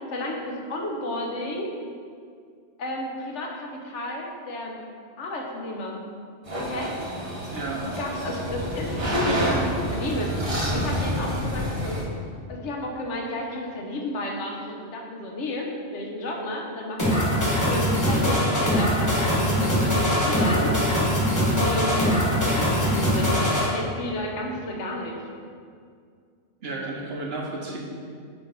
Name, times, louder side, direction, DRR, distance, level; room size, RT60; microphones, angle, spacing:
voice 1, 0.1-1.7 2.8-4.8 5.2-6.0 6.6-6.9 7.8-10.3 10.7-12.0 12.5-17.3 17.7-20.8 21.6-25.2, left 1 dB, 75° left, 0 dB, 1.1 m, -32 dB
sound 1, 6.4-12.0, equal, 30° right, 0.9 m, -28 dB
voice 2, 7.5-7.8 8.1-8.4 26.6-27.8, right 2 dB, 60° right, -2 dB, 1.1 m, -33 dB
sound 2, 17.0-23.7, equal, 15° left, 1.2 m, -22 dB
8.7 x 3.1 x 3.9 m, 2.2 s
omnidirectional pair, 1.2 m